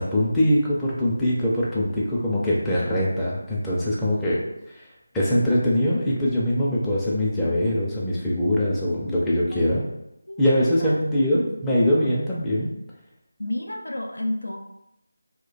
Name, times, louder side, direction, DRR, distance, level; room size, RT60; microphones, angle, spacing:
voice 1, 0.0-4.4 4.7-4.9 5.1-9.8 10.4-12.7, left 1 dB, 5° left, -8 dB, 0.5 m, -22 dB
voice 2, 10.3-11.6 13.4-14.6, left 1 dB, 85° left, 2 dB, 0.5 m, -32 dB
2.4 x 2.1 x 4.0 m, 0.86 s
figure-of-eight pair, 165°, 0 cm